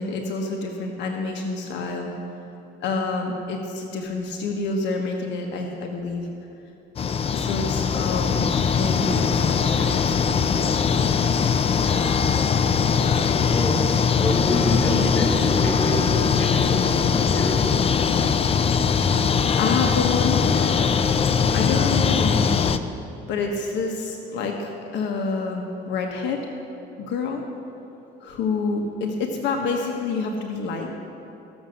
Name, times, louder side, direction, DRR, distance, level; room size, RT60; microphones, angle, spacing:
voice 1, 0.0-2.1 2.8-6.3 7.3-10.2 19.1-20.9 21.5-22.6 23.3-26.5 27.0-27.4 28.2-30.9, left 4 dB, 75° left, 2 dB, 1.3 m, -28 dB
sound 1, 7.0-22.8, left 6 dB, 30° left, 0.5 m, -21 dB
voice 2, 12.9-13.8 14.2-17.6, left 1 dB, 10° left, -4 dB, 3.0 m, -27 dB
15.0 x 7.3 x 6.5 m, 2.9 s
cardioid pair, 115°, 19 cm